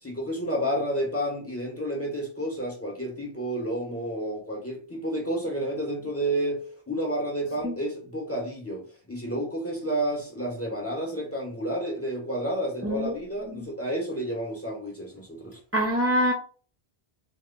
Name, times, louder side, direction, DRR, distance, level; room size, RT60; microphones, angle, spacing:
voice 1, 0.0-15.6, right 1 dB, 15° left, 0.8 m, -30 dB
voice 2, 12.8-13.1 13.5-13.7 15.7-16.3, equal, 20° right, 0.4 m, -25 dB
3.0 x 2.2 x 3.7 m
omnidirectional pair, 1.0 m